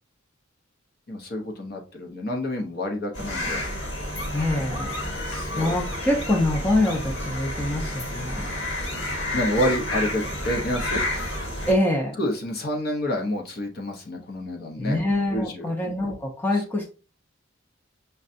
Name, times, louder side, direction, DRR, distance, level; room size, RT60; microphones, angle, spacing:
voice 1, 1.1-3.7 5.3-5.8 9.3-11.0 12.2-15.0 15.3-15.7, left 1 dB, 50° left, 2 dB, 0.7 m, -28 dB
sound 1, 3.1-11.7, left 1 dB, 65° left, 1.4 m, -30 dB
voice 2, 4.3-5.0 5.5-8.5 11.7-12.2 14.8-16.8, left 1 dB, 10° left, -1 dB, 0.6 m, -25 dB
5.4 x 2.3 x 2.5 m, 0.34 s
head